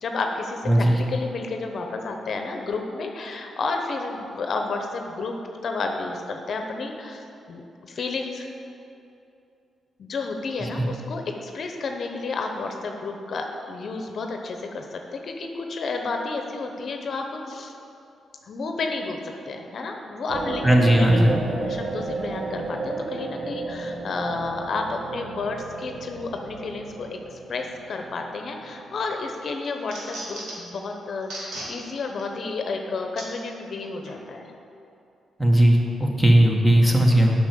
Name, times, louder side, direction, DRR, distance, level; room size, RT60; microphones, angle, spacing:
voice 1, 0.0-5.4 5.6-8.5 10.0-17.7 18.4-20.7 20.9-21.2 21.6-34.5, left 3 dB, 60° left, 3 dB, 0.9 m, -31 dB
voice 2, 0.7-1.0 10.6-10.9 20.6-21.3 35.4-37.3, right 1 dB, 5° right, 0 dB, 1.5 m, -17 dB
sound 1, 20.3-29.2, right 3 dB, 60° right, 0.9 m, -33 dB
sound 2, 28.6-29.0 29.4-30.7 31.2-31.7 32.2-32.3 33.2-33.3 34.1-34.2, right 1 dB, 85° right, 2.5 m, -37 dB
8.4 x 5.9 x 7.6 m, 2.8 s
cardioid pair, 95°, 0 cm